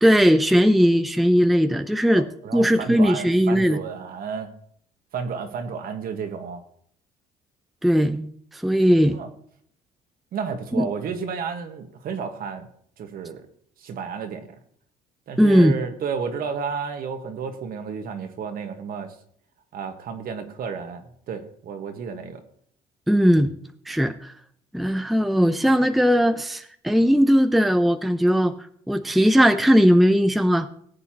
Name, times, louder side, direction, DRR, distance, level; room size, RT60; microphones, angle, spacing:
voice 1, 0.0-2.2 2.5-3.8 7.8-9.2 10.8-10.9 15.4-15.8 23.1-23.5 23.9-24.3 24.7-28.5 28.9-30.7, equal, ahead, 9 dB, 0.6 m, -18 dB
voice 2, 2.1-4.5 5.1-6.6 9.1-9.3 10.3-12.7 13.0-13.4 13.8-14.5 15.3-19.1 19.7-22.4, right 6 dB, 60° right, 6 dB, 1.5 m, -32 dB
19.0 x 8.1 x 3.0 m, 0.65 s
cardioid pair, 110°, 17 cm